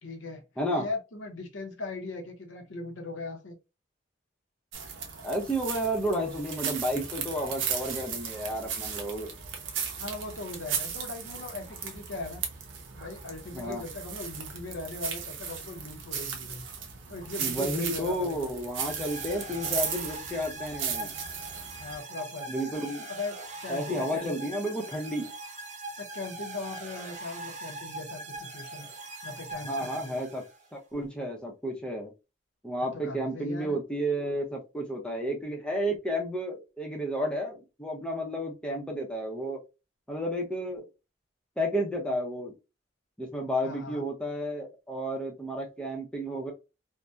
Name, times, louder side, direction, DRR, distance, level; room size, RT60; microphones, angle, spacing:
voice 1, 0.0-0.4 0.7-3.6 10.0-12.4 12.9-16.6 17.1-18.5 21.8-22.5 22.8-23.4 23.6-24.5 26.0-28.9 29.2-30.2 32.8-33.8 43.6-44.1, left 3 dB, 80° left, 0.7 m, -39 dB
voice 2, 0.6-0.9 5.2-9.3 13.5-13.8 17.4-21.1 22.5-23.1 23.7-25.3 29.6-30.4 30.7-32.1 32.6-39.6 40.1-40.9 41.6-42.5 43.2-46.5, equal, 5° left, 0.6 m, -32 dB
sound 1, 4.7-22.0, right 7 dB, 85° right, 0.6 m, -36 dB
sound 2, 18.8-30.7, right 2 dB, 40° right, 0.5 m, -41 dB
2.7 x 2.1 x 2.3 m
head